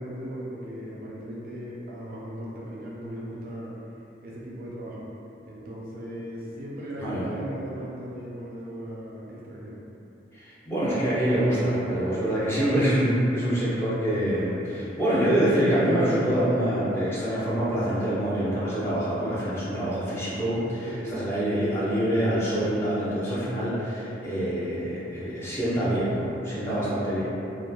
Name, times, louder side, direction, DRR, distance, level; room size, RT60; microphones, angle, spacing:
voice 1, 0.0-3.7 4.2-5.0 5.4-9.8 12.4-12.6 20.8-21.4 26.8-27.2, equal, 50° right, -5 dB, 0.3 m, -38 dB
voice 2, 10.3-27.2, right 1 dB, 15° left, -11 dB, 0.5 m, -25 dB
2.9 x 2.2 x 2.2 m, 2.9 s
head